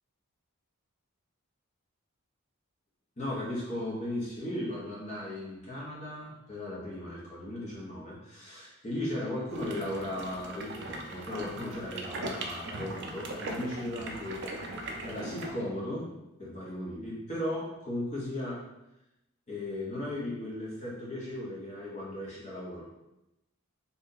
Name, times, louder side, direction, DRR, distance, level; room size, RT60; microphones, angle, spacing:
voice 1, 3.2-14.4 15.0-16.1 16.4-18.6 19.5-22.8, left 1 dB, 30° left, -6 dB, 0.9 m, -36 dB
sound 1, 9.5-15.5, right 2 dB, 50° right, 0.4 m, -39 dB
2.7 x 2.4 x 3.8 m, 0.92 s
head